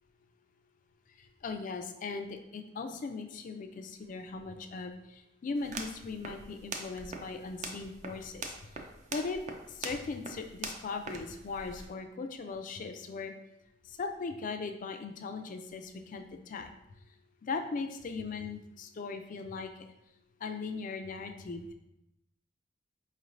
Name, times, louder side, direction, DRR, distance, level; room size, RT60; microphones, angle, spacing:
voice 1, 1.2-8.5 9.1-9.4 9.7-13.3 13.9-16.7 17.4-19.7 20.4-21.7, left 4 dB, 45° left, 6 dB, 0.3 m, -39 dB
sound 1, 5.6-11.9, right 3 dB, 40° right, 0.4 m, -43 dB
4.4 x 3.1 x 2.5 m, 0.87 s
head